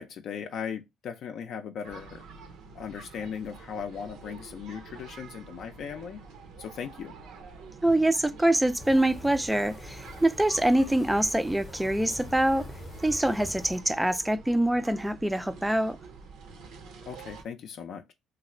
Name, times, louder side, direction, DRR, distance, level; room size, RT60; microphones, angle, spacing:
voice 1, 0.0-2.2 2.7-6.2 6.6-7.1 17.1-18.1, left 7 dB, 65° left, 0.4 m, -38 dB
sound 1, 1.8-17.4, right 4 dB, 75° right, 0.6 m, -48 dB
voice 2, 7.8-12.7 13.0-16.0, right 1 dB, 5° right, 0.3 m, -25 dB
sound 2, 8.8-13.8, left 1 dB, 25° left, 0.7 m, -44 dB
3.1 x 2.4 x 2.9 m
cardioid pair, 95°, 0 cm